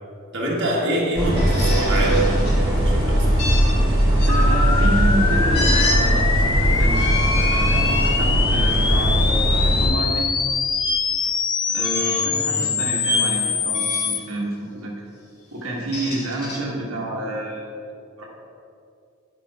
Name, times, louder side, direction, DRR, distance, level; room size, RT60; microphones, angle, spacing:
voice 1, 0.3-3.4 11.9-12.7, right 1 dB, 60° right, -3 dB, 1.7 m, -26 dB
sound 1, 1.2-9.9, equal, 20° right, 1.9 m, -19 dB
sound 2, 1.4-2.6 3.4-4.3 5.5-6.0 6.8-8.2 8.8-9.0 10.8-11.0 11.8-12.4 13.0-13.3 13.7-14.2 15.7-16.6, left 1 dB, 55° left, 1.9 m, -29 dB
voice 2, 4.2-10.3 11.7-14.9 15.5-17.7 18.2-18.3, right 1 dB, 90° right, -3 dB, 1.4 m, -29 dB
sound 3, 4.3-14.2, left 5 dB, 20° left, 0.4 m, -24 dB
10.5 x 5.4 x 4.7 m, 2.5 s
head